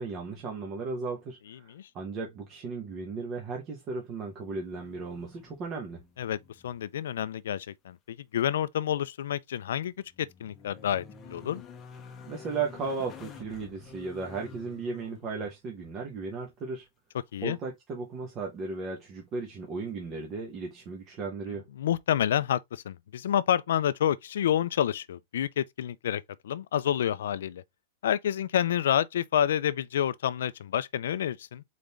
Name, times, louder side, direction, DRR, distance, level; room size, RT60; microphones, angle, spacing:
voice 1, 0.0-6.1 12.2-16.9 17.4-21.6, right 4 dB, 25° right, 0.9 m, -36 dB
sound 1, 4.7-5.7 6.0-6.8 7.1-7.2 9.7-15.5 18.4-18.5, left 5 dB, 15° left, 0.8 m, -48 dB
voice 2, 6.6-11.6 17.3-17.6 21.8-27.6 28.0-31.6, left 10 dB, 90° left, 0.5 m, -29 dB
4.2 x 3.8 x 3.4 m
supercardioid pair, 175°, 0 cm